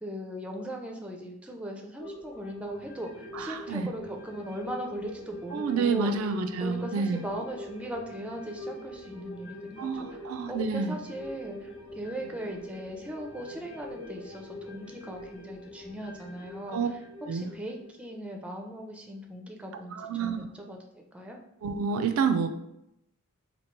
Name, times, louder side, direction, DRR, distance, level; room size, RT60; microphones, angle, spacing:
voice 1, 0.0-6.1 6.6-9.9 10.5-16.8 17.3-21.4, right 1 dB, 5° right, 2 dB, 0.4 m, -39 dB
sound 1, 2.0-18.8 19.1-19.2, left 1 dB, 80° left, 0.7 m, -44 dB
voice 2, 3.3-3.9 5.5-7.2 9.8-11.0 16.7-16.9 17.3-17.5 19.9-20.5 21.6-22.5, right 5 dB, 75° right, 8 dB, 0.4 m, -29 dB
2.9 x 2.7 x 4.5 m, 0.83 s
head